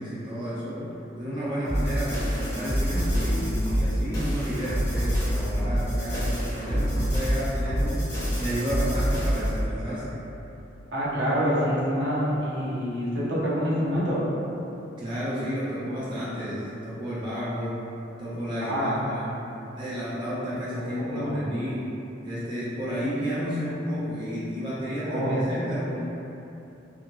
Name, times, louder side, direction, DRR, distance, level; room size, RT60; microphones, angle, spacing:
voice 1, 0.0-8.1 8.4-10.2 15.0-17.8 18.2-19.4 19.7-22.0 22.2-26.0, equal, 25° right, -10 dB, 0.4 m, -31 dB
sound 1, 1.6-9.6, equal, 15° left, 0.8 m, -26 dB
voice 2, 10.9-14.2 18.6-19.0 20.8-21.4 25.0-25.4, equal, 70° right, -8 dB, 0.7 m, -26 dB
2.8 x 2.4 x 2.8 m, 2.9 s
head